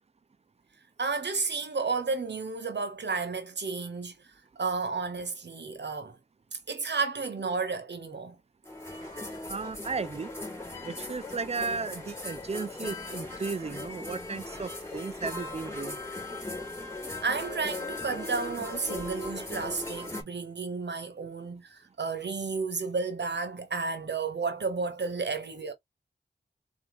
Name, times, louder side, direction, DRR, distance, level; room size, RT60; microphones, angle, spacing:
voice 1, 1.0-4.2 4.6-6.2 6.7-8.4 17.2-25.7, right 4 dB, 70° right, 1.3 m, -32 dB
sound 1, 8.6-20.2, left 2 dB, 15° left, 2.8 m, -38 dB
voice 2, 9.5-10.3 10.8-16.0, right 4 dB, 35° right, 0.5 m, -35 dB
4.0 x 3.3 x 3.1 m
wide cardioid pair, 75°, 18 cm